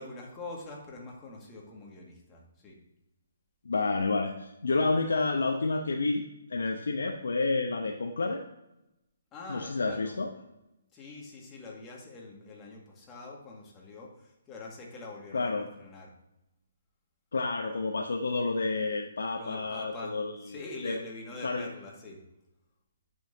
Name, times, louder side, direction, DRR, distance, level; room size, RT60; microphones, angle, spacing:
voice 1, 0.0-2.8 9.3-10.2 10.9-16.1 19.4-22.2, left 2 dB, 20° left, -2 dB, 1.9 m, -44 dB
voice 2, 3.6-6.2 6.5-8.4 9.5-10.3 15.3-15.7 17.3-20.3 20.8-21.0 21.4-21.7, left 3 dB, 75° left, 2 dB, 0.8 m, -29 dB
10.0 x 5.6 x 2.7 m, 0.90 s
hypercardioid pair, 145°, 0 cm